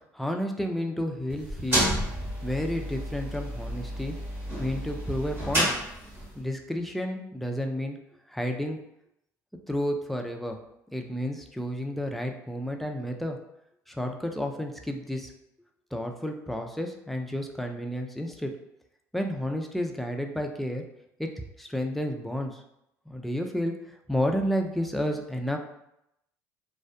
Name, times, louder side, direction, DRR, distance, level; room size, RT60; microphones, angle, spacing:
voice 1, 0.1-2.0 2.4-4.2 4.6-5.7 6.4-8.0 8.3-8.8 9.7-10.6 10.9-13.4 13.9-15.3 15.9-18.5 19.1-20.8 21.2-21.3 21.6-22.6 23.1-25.6, equal, ahead, 3 dB, 0.4 m, -31 dB
sound 1, 1.3-6.4, equal, 30° right, 1.3 m, -30 dB
2.5 x 2.1 x 2.5 m, 0.81 s
hypercardioid pair, 70°, 8 cm